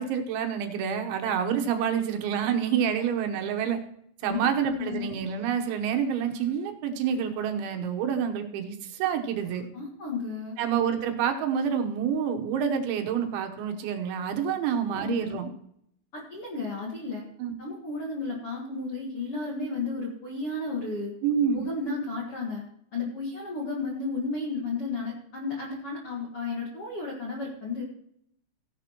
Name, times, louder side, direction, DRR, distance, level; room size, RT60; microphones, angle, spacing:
voice 1, 0.0-3.8 4.2-9.7 10.6-15.5 17.4-17.5 21.2-21.6, right 8 dB, 75° right, 5 dB, 3.3 m, -28 dB
voice 2, 4.2-5.1 9.7-10.5 14.8-15.4 16.1-17.2 17.6-21.1 21.5-22.6 22.9-27.8, left 3 dB, 65° left, -2 dB, 1.4 m, -33 dB
17.0 x 10.5 x 3.0 m, 0.71 s
omnidirectional pair, 5.7 m